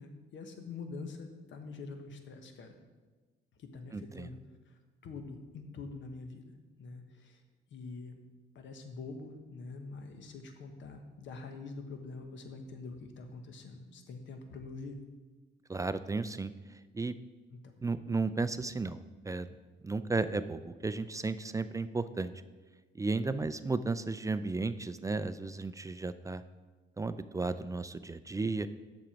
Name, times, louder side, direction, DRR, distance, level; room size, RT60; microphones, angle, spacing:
voice 1, 0.0-2.7 3.6-4.4 5.0-6.5 6.8-7.4 7.7-8.2 8.5-15.0 17.5-17.6, left 3 dB, 70° left, 6 dB, 1.1 m, -45 dB
voice 2, 3.9-4.3 15.7-17.1 17.8-19.5 19.8-22.3 22.9-26.4 27.0-28.7, right 3 dB, 15° right, 13 dB, 0.3 m, -34 dB
7.3 x 6.2 x 5.1 m, 1.3 s
cardioid pair, 90°, 20 cm